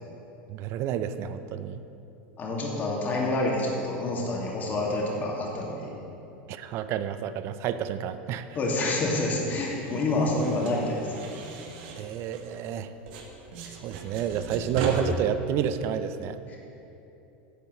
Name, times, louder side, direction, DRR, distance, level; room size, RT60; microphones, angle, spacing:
voice 1, 0.5-1.8 6.5-8.5 12.0-12.9 13.8-16.5, right 9 dB, 50° right, 11 dB, 0.5 m, -30 dB
voice 2, 2.4-5.9 8.5-11.3 16.5-16.6, left 2 dB, 30° left, -2 dB, 2.3 m, -28 dB
sound 1, 9.6-12.8 13.1-14.9, right 6 dB, 70° right, 1.6 m, -38 dB
10.5 x 5.4 x 7.8 m, 3.0 s
supercardioid pair, 120°, 6 cm